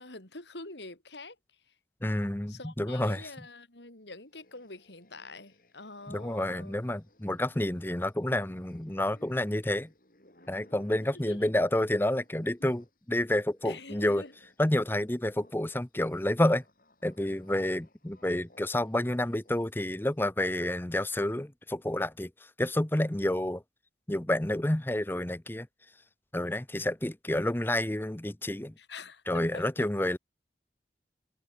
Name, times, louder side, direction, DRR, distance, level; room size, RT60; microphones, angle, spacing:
voice 1, 0.0-1.4 2.5-6.7 11.1-11.5 13.6-14.3 28.8-29.6, left 3 dB, 75° left, 4.5 m, -45 dB
voice 2, 2.0-3.3 6.1-9.9 10.5-14.2 14.6-16.6 17.0-22.3 22.6-23.6 24.1-25.7 26.3-28.7 29.3-30.2, left 1 dB, 10° left, 0.7 m, -29 dB
sound 1, 4.2-13.0 13.3-20.1, left 1 dB, 50° left, 6.8 m, -62 dB
head